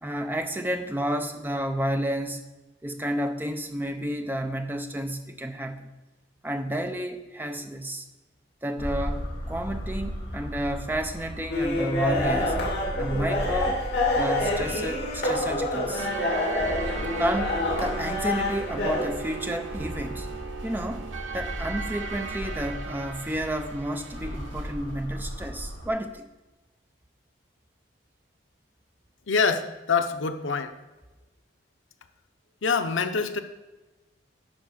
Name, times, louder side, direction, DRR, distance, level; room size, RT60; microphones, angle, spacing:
voice 1, 0.0-2.4 2.8-5.9 6.4-8.0 8.6-12.6 13.0-13.8 14.2-16.1 17.2-20.3 20.6-21.0 21.3-26.3, right 1 dB, 10° right, 7 dB, 0.5 m, -31 dB
sound 1, 8.8-25.9, equal, 40° left, 3.0 m, -36 dB
sound 2, 11.5-19.1, left 1 dB, 60° left, 2.3 m, -27 dB
sound 3, 16.0-24.8, right 5 dB, 80° right, 0.7 m, -38 dB
voice 2, 29.3-30.7 32.6-33.4, left 5 dB, 85° left, 7 dB, 0.7 m, -25 dB
10.5 x 4.1 x 6.4 m, 1.1 s
head